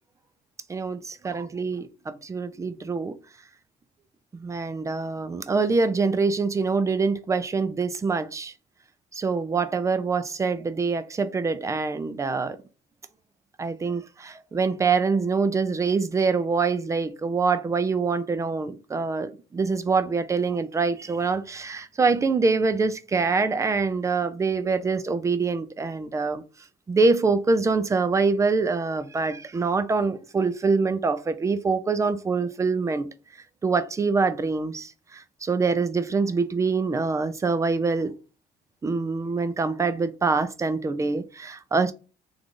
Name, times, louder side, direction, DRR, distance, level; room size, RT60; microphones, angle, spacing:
voice 1, 0.7-3.2 4.3-8.5 9.1-12.6 13.6-26.4 26.9-33.1 33.6-38.1 38.8-41.9, right 4 dB, 20° right, 0.4 m, -25 dB
3.2 x 2.5 x 3.6 m
cardioid pair, 110°, 17 cm